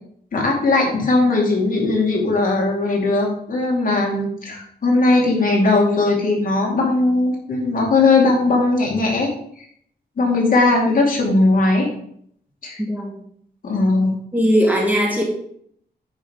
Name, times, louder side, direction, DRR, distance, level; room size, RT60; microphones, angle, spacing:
voice 1, 0.3-9.3 10.2-11.9 12.6-12.8 13.6-14.1, left 2 dB, 55° left, -1 dB, 2.5 m, -18 dB
voice 2, 12.8-13.2 14.3-15.2, equal, 10° right, -1 dB, 1.7 m, -19 dB
9.8 x 5.1 x 5.4 m, 0.66 s
wide cardioid pair, 155°, 17 cm